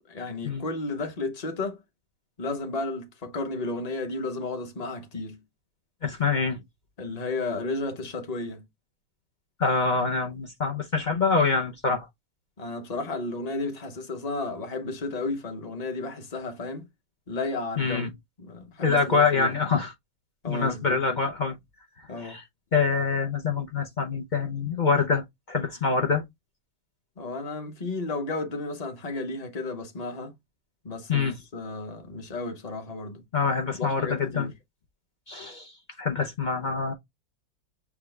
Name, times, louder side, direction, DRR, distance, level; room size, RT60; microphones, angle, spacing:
voice 1, 0.1-1.8 2.4-5.4 7.0-8.6 12.6-16.8 17.3-18.1 18.4-19.8 20.4-21.0 22.1-22.4 27.2-30.3 30.8-33.2 33.8-34.5, left 3 dB, 30° left, 0.9 m, -33 dB
voice 2, 6.0-6.6 9.6-12.1 17.8-18.1 18.8-19.9 20.5-21.6 22.2-22.4 22.7-26.2 31.1-31.4 33.3-34.5 35.3-35.7 36.0-36.9, left 4 dB, 50° left, 0.5 m, -25 dB
7.0 x 2.3 x 3.2 m
omnidirectional pair, 1.8 m